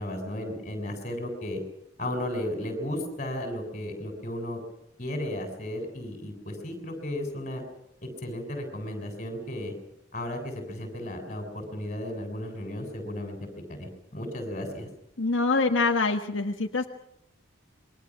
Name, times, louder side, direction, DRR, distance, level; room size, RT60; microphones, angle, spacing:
voice 1, 0.0-1.6 2.0-4.6 5.0-7.6 8.0-9.7 10.1-13.4 13.7-14.9, left 1 dB, 35° left, 5 dB, 7.4 m, -34 dB
voice 2, 15.2-16.9, left 3 dB, 85° left, 4 dB, 1.5 m, -25 dB
27.5 x 23.5 x 6.1 m, 0.79 s
head